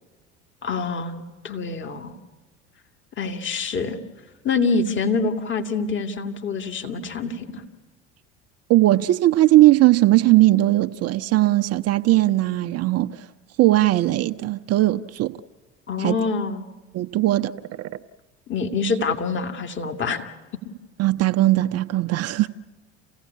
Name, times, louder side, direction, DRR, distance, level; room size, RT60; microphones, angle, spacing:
voice 1, 0.6-2.1 3.2-4.0 4.4-7.6 15.9-16.7 18.5-20.3, left 4 dB, 35° left, 2.2 m, -26 dB
voice 2, 8.7-13.3 13.6-15.4 16.0-16.2 16.9-17.5 17.8-17.9 21.0-22.5, right 16 dB, 45° right, 0.7 m, -18 dB
29.0 x 16.0 x 8.4 m
hypercardioid pair, 70°, 34 cm